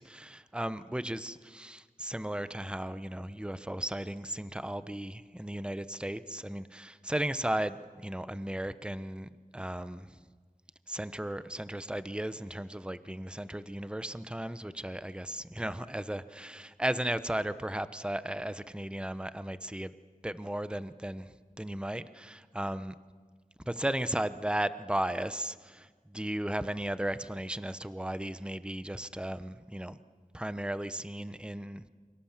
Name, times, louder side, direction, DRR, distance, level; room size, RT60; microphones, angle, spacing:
voice 1, 0.0-10.2 10.9-19.9 20.2-21.3 21.6-22.9 23.7-30.0 30.3-31.8, right 1 dB, 5° right, 13 dB, 1.1 m, -35 dB
29.0 x 25.0 x 7.5 m, 1.5 s
wide cardioid pair, 55°, 14 cm